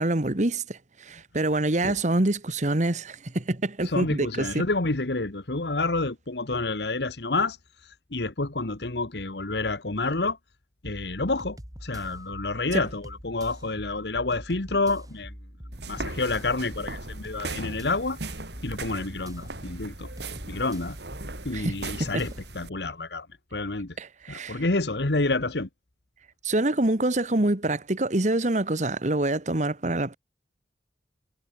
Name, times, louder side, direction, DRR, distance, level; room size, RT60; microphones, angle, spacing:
voice 1, 0.0-4.5 21.5-21.7 22.0-22.1 24.0-24.6 26.4-30.2, right 2 dB, 40° right, 1.4 m, -26 dB
voice 2, 3.8-10.4 10.8-15.4 15.9-18.2 18.6-20.1 20.5-21.0 21.4-23.3 23.5-24.0 24.3-25.7, left 3 dB, 70° left, 1.6 m, -29 dB
sound 1, 10.8-22.6, equal, 20° right, 7.4 m, -44 dB
sound 2, 15.7-22.7, right 2 dB, 75° right, 6.3 m, -38 dB
head